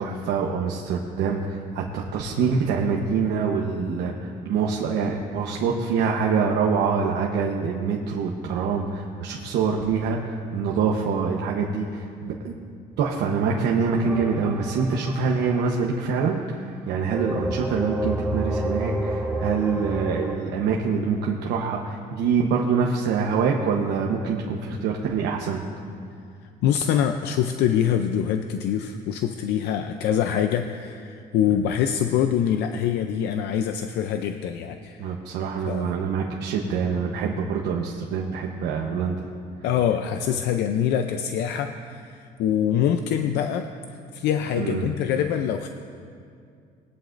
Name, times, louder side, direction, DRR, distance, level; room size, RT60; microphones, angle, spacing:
voice 1, 0.0-12.5 13.0-25.6 35.0-39.2 44.6-44.9, right 5 dB, 80° right, 0 dB, 1.0 m, -25 dB
sound 1, 14.0-16.5 17.1-20.4, right 1 dB, 10° right, 1.4 m, -30 dB
voice 2, 26.6-35.1 35.7-35.9 39.6-43.7 44.1-45.7, left 9 dB, 80° left, 7 dB, 0.5 m, -24 dB
20.0 x 11.5 x 2.6 m, 2.4 s
cardioid pair, 110°, 17 cm